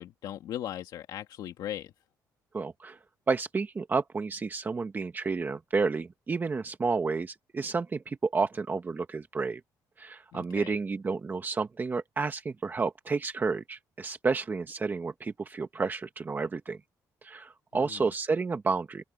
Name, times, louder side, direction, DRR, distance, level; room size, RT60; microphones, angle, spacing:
voice 1, 0.0-1.9 10.3-10.8 17.7-18.1, left 11 dB, 80° left, 2.0 m, -39 dB
voice 2, 2.5-3.0 3.3-9.6 10.0-16.8 17.2-19.0, right 4 dB, 25° right, 1.1 m, -31 dB
open air
cardioid pair, 115°, 7 cm